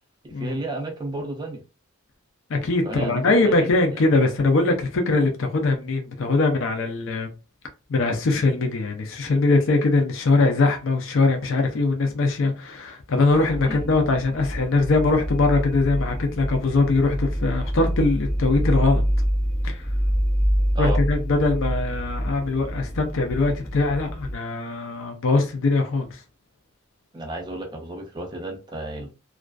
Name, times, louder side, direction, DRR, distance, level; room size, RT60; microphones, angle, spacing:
voice 1, 0.2-1.6 2.8-4.0 13.7-13.9 20.7-21.0 27.1-29.1, right 2 dB, 20° right, 0.4 m, -32 dB
voice 2, 2.5-7.3 7.9-19.0 19.6-19.9 20.8-26.2, left 3 dB, 60° left, 0.5 m, -22 dB
sound 1, 13.3-24.3, equal, 10° left, 0.7 m, -26 dB
2.4 x 2.3 x 2.2 m
head